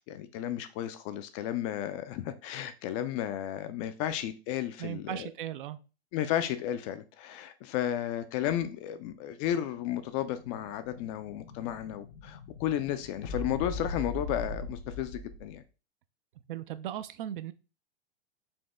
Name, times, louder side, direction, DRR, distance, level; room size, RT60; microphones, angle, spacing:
voice 1, 0.1-5.3 6.1-15.6, left 11 dB, 30° left, 0.4 m, -33 dB
voice 2, 4.8-5.8 16.5-17.5, right 11 dB, 55° right, 0.5 m, -37 dB
Explosion, 10.0-15.6, left 2 dB, 70° left, 1.0 m, -41 dB
4.3 x 2.8 x 3.3 m
figure-of-eight pair, 100°, 33 cm